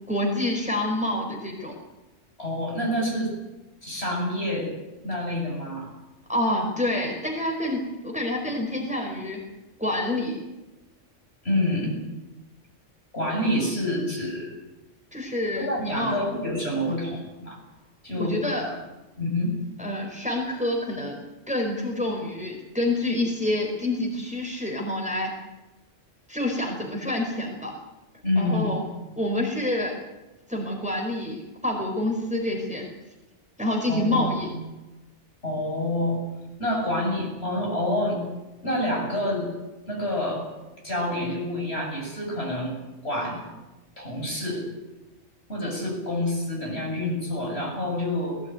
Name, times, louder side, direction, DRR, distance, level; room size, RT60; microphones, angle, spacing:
voice 1, 0.1-1.7 6.3-9.4 9.8-10.4 15.1-16.2 18.2-18.7 19.8-25.3 26.3-27.7 28.4-28.8 29.2-29.9 30.5-32.8 33.6-34.5, left 1 dB, 5° right, 1 dB, 4.6 m, -27 dB
voice 2, 2.4-3.4 3.8-4.7 5.0-5.9 11.4-12.0 13.1-14.5 15.6-17.6 18.0-18.8 19.2-19.6 28.2-28.8 33.9-34.5 35.4-36.2 36.6-38.2 38.6-39.5 39.9-40.5 40.8-42.8 43.0-43.5 44.0-44.7 45.5-48.4, left 1 dB, 55° left, -1 dB, 8.0 m, -27 dB
19.5 x 17.0 x 9.5 m, 1.1 s
omnidirectional pair, 1.3 m